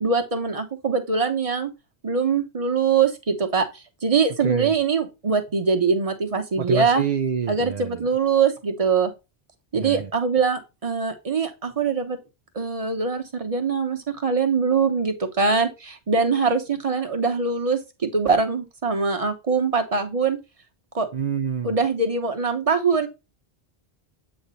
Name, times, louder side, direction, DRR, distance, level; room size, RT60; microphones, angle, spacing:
voice 1, 0.0-1.7 2.0-7.0 7.5-9.1 9.7-12.2 12.5-20.4 20.9-21.1 21.6-23.1, right 5 dB, 35° right, 1.1 m, -23 dB
voice 2, 6.6-8.0 9.7-10.1 21.1-21.7, right 7 dB, 55° right, 0.6 m, -27 dB
7.9 x 3.3 x 4.1 m
omnidirectional pair, 1.0 m